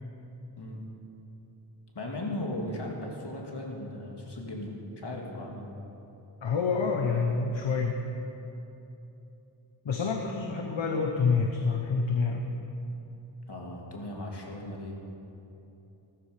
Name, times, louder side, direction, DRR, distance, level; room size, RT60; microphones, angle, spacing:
voice 1, 1.9-5.7 13.5-14.9, left 1 dB, 65° left, -1 dB, 2.3 m, -37 dB
voice 2, 6.4-8.0 9.8-12.5, left 4 dB, 90° left, 2 dB, 1.0 m, -27 dB
15.0 x 13.0 x 5.1 m, 3.0 s
wide cardioid pair, 65°, 44 cm